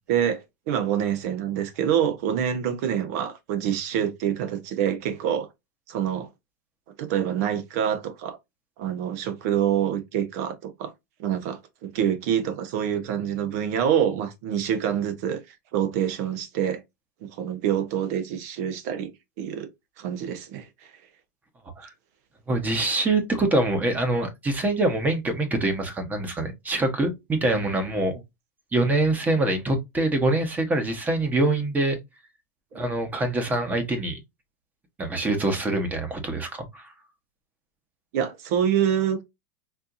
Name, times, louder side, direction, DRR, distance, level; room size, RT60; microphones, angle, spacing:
voice 1, 0.1-5.5 5.9-6.3 7.0-8.4 8.8-10.9 11.2-15.4 15.7-16.8 17.2-19.1 19.4-19.7 20.0-20.7 32.7-32.8 38.1-39.2, right 9 dB, 65° right, 0.9 m, -26 dB
voice 2, 22.5-28.2 28.7-32.0 32.7-34.2 35.0-36.9, right 2 dB, 15° right, 1.0 m, -24 dB
4.3 x 2.8 x 2.5 m
supercardioid pair, 125°, 10 cm